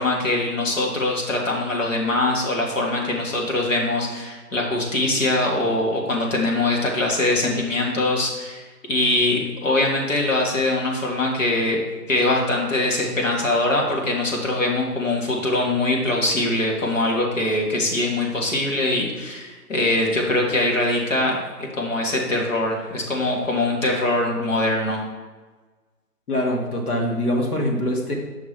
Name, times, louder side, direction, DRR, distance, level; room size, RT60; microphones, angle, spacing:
voice 1, 0.0-11.8 12.1-25.0, left 2 dB, 55° left, 0 dB, 1.6 m, -22 dB
voice 2, 26.3-28.1, left 1 dB, 70° left, 0 dB, 1.8 m, -23 dB
5.9 x 5.9 x 3.3 m, 1.3 s
hypercardioid pair, 170°, 47 cm